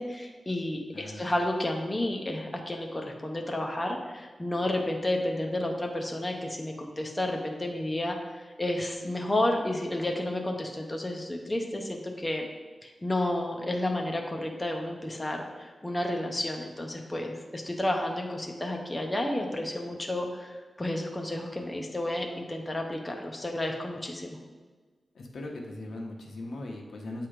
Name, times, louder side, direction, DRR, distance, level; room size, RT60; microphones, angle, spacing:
voice 1, 0.0-8.2 8.6-12.4 12.8-24.4, left 1 dB, 15° left, 1 dB, 0.5 m, -31 dB
voice 2, 0.9-1.3 25.1-27.3, left 2 dB, 80° left, 0 dB, 1.0 m, -39 dB
8.1 x 3.0 x 5.0 m, 1.4 s
wide cardioid pair, 165°, 0 cm